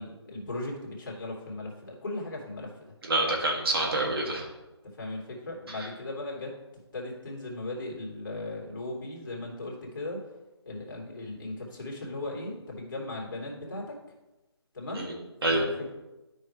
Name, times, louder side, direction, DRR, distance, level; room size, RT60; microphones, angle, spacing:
voice 1, 0.0-2.7 5.0-6.5 6.9-10.2 10.6-13.9 14.7-15.1 15.5-15.9, left 2 dB, 45° left, -2 dB, 2.8 m, -37 dB
voice 2, 3.0-4.4 5.7-5.9 14.9-15.1 15.4-15.6, right 2 dB, 55° right, -1 dB, 2.4 m, -27 dB
12.5 x 5.5 x 3.3 m, 1.0 s
figure-of-eight pair, 170°, 15 cm